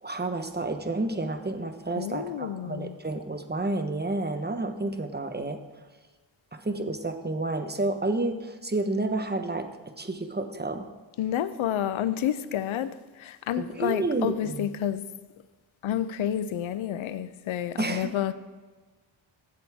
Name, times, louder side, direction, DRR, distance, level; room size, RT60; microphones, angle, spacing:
voice 1, 0.0-5.6 6.5-9.7 10.0-10.9 13.6-14.7 17.8-18.1, right 2 dB, 20° right, 1.1 m, -30 dB
voice 2, 1.9-3.0 11.2-15.1 15.8-18.3, left 10 dB, 85° left, 0.6 m, -30 dB
14.5 x 7.9 x 3.6 m
cardioid pair, 55°, 47 cm